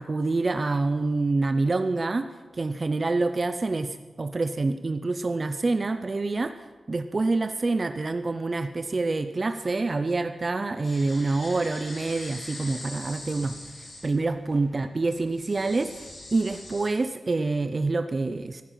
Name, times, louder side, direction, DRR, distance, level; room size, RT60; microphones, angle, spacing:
voice 1, 0.0-2.3 2.5-6.6 6.9-18.6, right 3 dB, 35° right, 9 dB, 0.6 m, -27 dB
sound 1, 10.8-16.9, left 2 dB, 55° left, 3.5 m, -43 dB
15.0 x 14.0 x 5.7 m, 1.3 s
wide cardioid pair, 140°, 0 cm